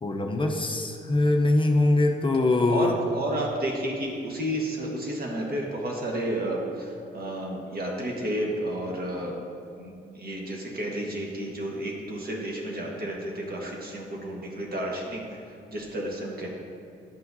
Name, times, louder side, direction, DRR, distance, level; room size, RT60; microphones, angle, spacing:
voice 1, 0.0-3.0, left 2 dB, 25° left, 3 dB, 0.6 m, -23 dB
voice 2, 2.7-9.3 9.8-15.2 15.7-16.5, right 1 dB, 50° right, -1 dB, 1.4 m, -31 dB
10.5 x 5.7 x 2.7 m, 2.5 s
cardioid pair, 85°, 20 cm